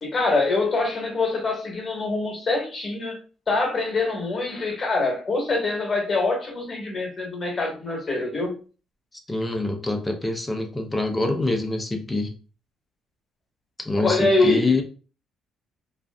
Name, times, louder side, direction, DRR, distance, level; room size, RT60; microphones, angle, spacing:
voice 1, 0.0-3.2 3.5-8.5 14.0-14.8, left 3 dB, 35° left, 1.2 m, -24 dB
voice 2, 9.1-12.4 13.8-14.8, left 2 dB, 15° left, 0.6 m, -25 dB
2.5 x 2.4 x 2.2 m
cardioid pair, 95°, 0 cm